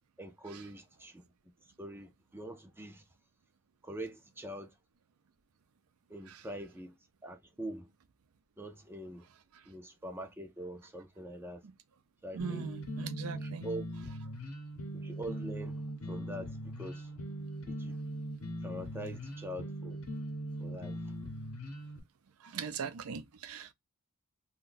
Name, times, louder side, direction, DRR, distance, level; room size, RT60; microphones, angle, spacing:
voice 1, 0.2-1.2 1.8-3.0 3.8-4.7 6.1-6.9 7.2-7.9 8.6-9.2 9.7-11.6 12.2-12.7 13.3-13.8 14.9-17.1 17.7-18.0 18.6-20.0 20.6-21.1, right 1 dB, 10° right, 0.4 m, -44 dB
voice 2, 12.3-13.7 22.4-23.7, right 6 dB, 85° right, 0.5 m, -40 dB
sound 1, 12.4-22.0, equal, 85° left, 0.8 m, -40 dB
2.6 x 2.2 x 3.8 m
head